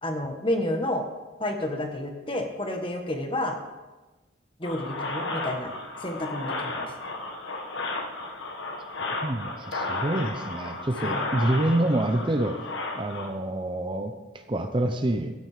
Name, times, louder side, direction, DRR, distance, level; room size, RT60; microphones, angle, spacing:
voice 1, 0.0-1.0 1.4-3.6 4.6-5.7 6.0-6.9 11.0-11.3, left 1 dB, 25° left, 4 dB, 1.4 m, -30 dB
sound 1, 4.6-13.3, left 2 dB, 70° left, 1.5 m, -33 dB
voice 2, 9.2-12.7 12.9-14.1 14.5-15.3, right 1 dB, 25° right, 6 dB, 0.6 m, -27 dB
13.5 x 9.6 x 5.0 m, 1.2 s
head